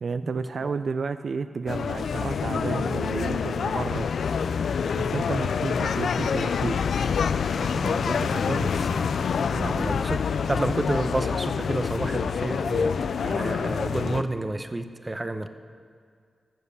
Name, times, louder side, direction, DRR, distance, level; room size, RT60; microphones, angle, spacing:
voice 1, 0.0-4.1 5.0-6.8 9.5-9.9, right 5 dB, 75° right, 10 dB, 0.3 m, -31 dB
sound 1, 1.7-14.2, left 6 dB, 90° left, 0.3 m, -26 dB
voice 2, 7.6-9.2 9.6-15.5, right 2 dB, 25° right, 9 dB, 0.8 m, -30 dB
13.5 x 7.1 x 6.8 m, 2.2 s
cardioid pair, 60°, 0 cm